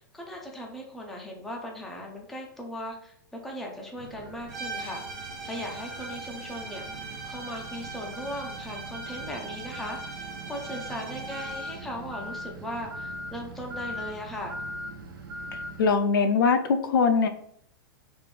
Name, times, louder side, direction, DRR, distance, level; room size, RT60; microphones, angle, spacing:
voice 1, 0.0-6.8 7.2-14.6, left 1 dB, ahead, -1 dB, 0.4 m, -38 dB
sound 1, 4.0-15.9, equal, 85° right, 0.7 m, -41 dB
sound 2, 4.5-11.9, right 4 dB, 50° right, 1.0 m, -40 dB
voice 2, 15.8-17.3, left 5 dB, 80° left, 8 dB, 0.5 m, -22 dB
3.3 x 2.5 x 3.2 m, 0.67 s
hypercardioid pair, 150°, 11 cm